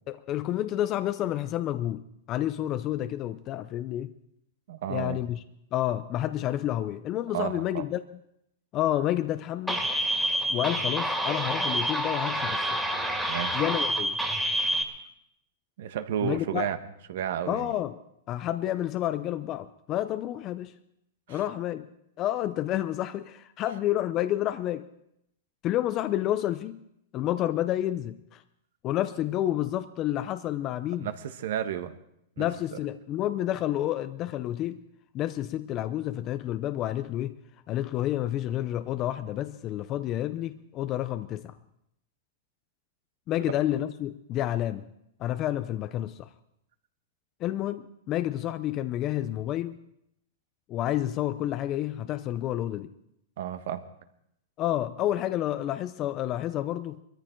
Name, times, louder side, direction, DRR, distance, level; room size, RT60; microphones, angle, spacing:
voice 1, 0.1-4.1 4.9-5.4 5.7-8.0 8.7-9.9 10.5-12.8 13.5-14.2 16.2-16.7 17.5-18.0 18.3-20.7 21.3-21.9 22.2-24.9 25.6-26.8 27.1-28.4 28.8-31.1 32.4-34.8 35.1-37.4 37.7-41.5 43.3-44.9 45.2-46.3 47.4-49.8 50.7-52.9 54.6-57.0, left 13 dB, 30° left, 11 dB, 0.5 m, -29 dB
voice 2, 4.7-5.2 7.3-7.8 13.3-13.6 15.8-16.8 17.1-17.7 21.3-21.4 31.0-32.0 32.4-32.5 53.4-53.8, right 10 dB, 65° right, 10 dB, 1.3 m, -32 dB
sound 1, 9.7-14.8, equal, ahead, 2.3 m, -28 dB
21.0 x 13.5 x 4.5 m, 0.77 s
hypercardioid pair, 145°, 0 cm